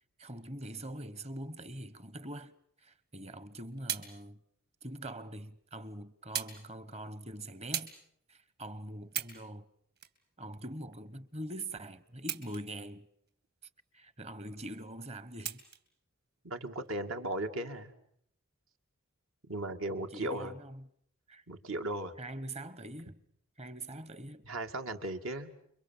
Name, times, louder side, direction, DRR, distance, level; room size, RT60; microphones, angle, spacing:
voice 1, 0.2-2.5 2.8-4.4 4.8-7.9 8.3-9.7 10.4-13.1 13.9-15.6 19.9-20.9 21.3-21.4 22.2-23.2 23.6-24.5, right 1 dB, 30° right, 1.2 m, -43 dB
sound 1, 3.4-4.1 5.0-5.1 6.3-6.6 6.9-7.1 7.7-8.0 8.5-8.6 9.0-9.4 10.0-11.0 12.2-12.9 13.3-13.4 15.4-15.9 16.7-16.9, right 9 dB, 50° right, 3.0 m, -38 dB
voice 2, 16.4-17.9 19.5-20.5 21.5-22.1 24.4-25.5, right 1 dB, 75° right, 2.4 m, -36 dB
29.5 x 24.0 x 7.4 m
head